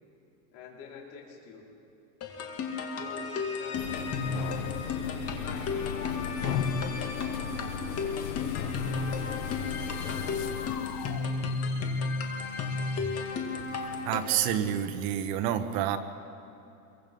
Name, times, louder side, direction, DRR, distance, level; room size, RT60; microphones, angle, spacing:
voice 1, 0.5-1.7 2.9-5.7 6.0-6.2, left 5 dB, 60° left, -3 dB, 4.9 m, -48 dB
sound 1, 2.2-14.5, left 4 dB, 30° left, 2.2 m, -33 dB
sound 2, 3.7-14.7, left 9 dB, 85° left, 1.3 m, -37 dB
voice 2, 14.0-16.0, right 10 dB, 50° right, 7 dB, 1.5 m, -28 dB
27.0 x 23.5 x 5.5 m, 2.9 s
supercardioid pair, 150°, 46 cm